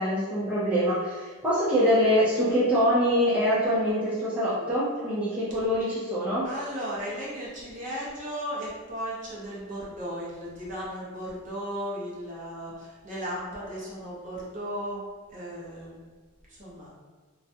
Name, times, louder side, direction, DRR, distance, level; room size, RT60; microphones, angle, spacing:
voice 1, 0.0-6.5, equal, 5° right, -11 dB, 0.4 m, -24 dB
voice 2, 6.4-16.0 16.5-16.9, equal, 35° right, -7 dB, 0.8 m, -36 dB
2.4 x 2.1 x 2.7 m, 1.4 s
head